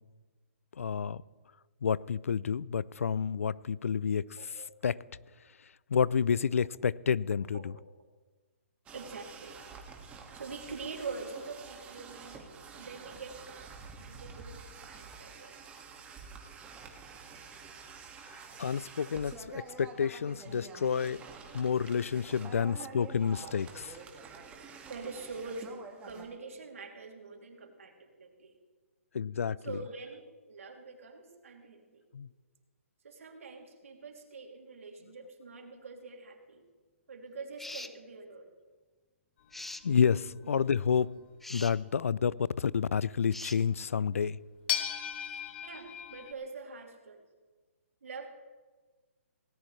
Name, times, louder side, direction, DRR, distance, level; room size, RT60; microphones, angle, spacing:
voice 1, 0.8-1.2 1.8-4.2 4.8-5.0 5.9-7.7 18.6-21.2 21.5-23.7 29.1-29.8 32.1-32.3 39.8-41.1 41.5-44.4, left 6 dB, 75° left, 0.4 m, -29 dB
voice 2, 4.4-4.7 7.5-7.6 8.9-9.5 10.3-13.7 14.0-15.6 22.6-22.9 23.4-23.5 24.9-28.5 29.6-32.0 33.0-36.6 37.1-38.5 40.4-40.6 45.6-47.2 48.0-48.3, right 4 dB, 75° right, 3.0 m, -45 dB
sound 1, 8.9-26.3, right 5 dB, 15° right, 2.0 m, -49 dB
sound 2, 37.6-38.0 39.5-39.9 41.4-41.7 43.3-43.6, left 2 dB, 5° left, 0.4 m, -42 dB
sound 3, 39.5-41.1 43.8-43.9 44.7-46.3, left 10 dB, 45° left, 1.6 m, -36 dB
18.5 x 18.0 x 3.3 m
hypercardioid pair, 140°, 8 cm